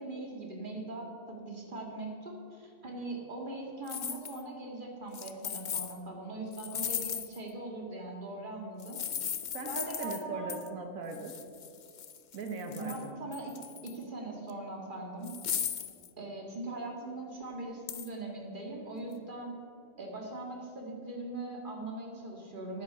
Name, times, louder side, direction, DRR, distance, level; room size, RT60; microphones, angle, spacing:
voice 1, 0.0-9.0 9.7-10.6 12.7-15.4 16.2-19.6 20.0-22.8, right 2 dB, 35° right, 0 dB, 2.1 m, -41 dB
sound 1, 3.9-4.4 5.1-5.9 6.5-7.5 8.8-10.2 10.5-10.7 11.1-13.1 13.3-14.0 14.5-14.6 15.2-16.1 17.9-18.1, left 8 dB, 50° left, 0.5 m, -37 dB
voice 2, 9.5-11.3 12.3-13.1, right 3 dB, 85° right, 5 dB, 1.4 m, -39 dB
9.6 x 9.5 x 6.8 m, 2.5 s
omnidirectional pair, 1.4 m